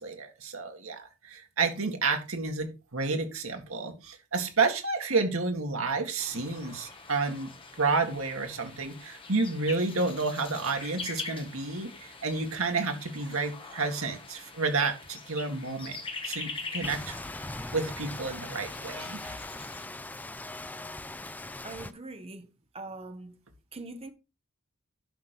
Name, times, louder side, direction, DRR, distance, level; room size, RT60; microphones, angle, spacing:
voice 1, 0.0-7.5 7.8-16.0 16.2-17.2 17.7-19.4, right 4 dB, 80° right, 2.1 m, -30 dB
sound 1, 6.2-19.8, left 4 dB, 25° left, 1.6 m, -43 dB
Rain, 16.8-21.9, left 2 dB, 10° left, 0.4 m, -40 dB
voice 2, 21.6-22.5 22.7-23.4 23.7-24.1, right 2 dB, 30° right, 1.1 m, -42 dB
11.5 x 5.3 x 4.5 m
head